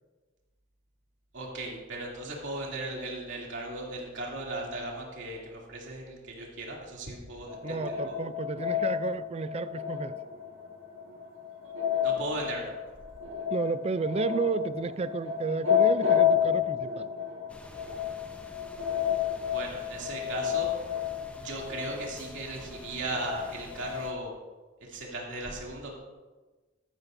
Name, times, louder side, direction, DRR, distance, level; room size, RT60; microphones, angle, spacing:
voice 1, 1.3-7.8 8.1-8.2 12.0-12.7 19.5-20.7 21.4-24.3 24.8-25.9, right 2 dB, 70° right, -3 dB, 2.7 m, -37 dB
sound 1, 7.5-24.2, left 9 dB, 90° right, 1.6 m, -30 dB
voice 2, 7.6-10.1 13.5-17.1, right 4 dB, 30° right, 15 dB, 0.4 m, -32 dB
sound 2, 17.5-24.1, equal, 5° left, 0.7 m, -49 dB
13.5 x 12.0 x 2.6 m, 1.2 s
head